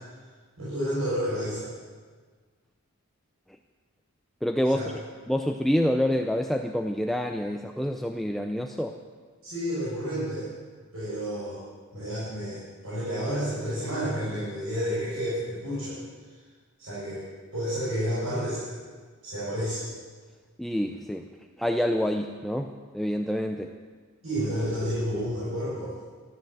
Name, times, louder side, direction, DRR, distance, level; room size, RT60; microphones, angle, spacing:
voice 1, 0.6-1.7 4.7-4.9 9.4-10.5 10.9-11.6 11.9-16.0 16.8-17.3 17.5-18.8 19.2-19.9 24.2-26.0, equal, 70° right, -10 dB, 6.6 m, -30 dB
voice 2, 4.4-9.0 20.6-21.3 21.6-23.7, equal, ahead, 3 dB, 0.5 m, -27 dB
14.5 x 13.0 x 7.7 m, 1.5 s
head